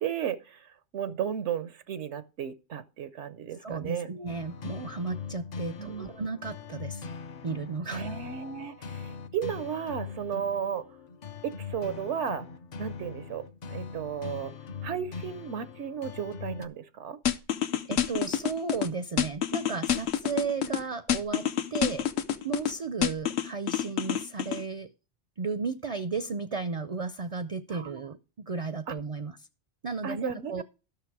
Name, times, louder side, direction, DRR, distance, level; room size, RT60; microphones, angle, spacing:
voice 1, 0.0-4.1 5.8-6.1 7.9-10.9 11.4-12.5 12.8-14.5 14.8-17.2 27.7-28.0 28.9-29.0 30.0-30.6, right 8 dB, 80° right, 1.0 m, -34 dB
voice 2, 3.6-7.1 7.4-8.2 17.9-22.0 22.4-24.9 25.4-29.4 29.8-30.6, right 4 dB, 45° right, 0.5 m, -34 dB
sound 1, 4.3-16.7, left 5 dB, 50° left, 0.6 m, -41 dB
sound 2, 17.3-18.9 19.2-20.8 21.1-22.7 23.0-24.6, left 10 dB, 70° left, 1.0 m, -27 dB
12.5 x 6.4 x 4.7 m
omnidirectional pair, 1.2 m